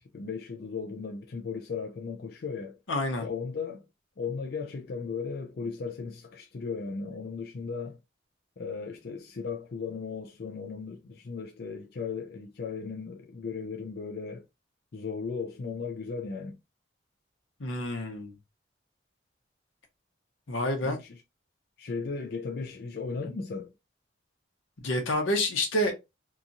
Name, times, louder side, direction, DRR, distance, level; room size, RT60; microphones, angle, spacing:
voice 1, 0.0-2.8 3.2-3.8 4.2-8.0 8.6-14.4 14.9-16.6 20.8-21.1 21.8-23.7, left 5 dB, 55° left, 0.4 m, -36 dB
voice 2, 2.9-3.3 17.6-18.3 20.5-21.0 24.8-25.9, left 1 dB, 90° left, 0.9 m, -28 dB
2.9 x 2.4 x 2.5 m
head